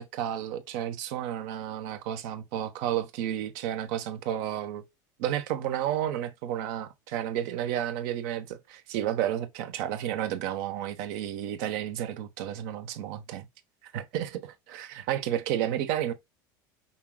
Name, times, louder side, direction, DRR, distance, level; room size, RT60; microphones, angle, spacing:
voice 1, 0.0-4.8 5.2-13.5 13.8-16.1, right 11 dB, 70° right, 1.0 m, -32 dB
5.6 x 3.7 x 2.2 m
supercardioid pair, 110°, 11 cm